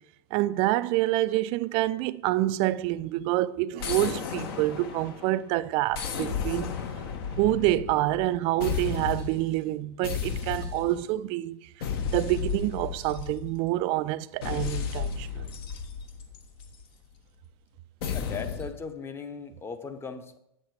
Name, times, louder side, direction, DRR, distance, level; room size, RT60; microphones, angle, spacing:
voice 1, 0.3-6.7 7.4-11.7 12.1-15.4, right 16 dB, 40° right, 0.3 m, -27 dB
sound 1, 3.8-5.4 5.9-8.3 8.6-9.4 10.0-11.1 11.8-13.7 14.4-16.8 18.0-18.8, left 6 dB, 60° left, 1.3 m, -33 dB
voice 2, 18.1-20.4, left 5 dB, 15° left, 0.8 m, -38 dB
8.2 x 6.6 x 4.7 m
hypercardioid pair, 110°, 14 cm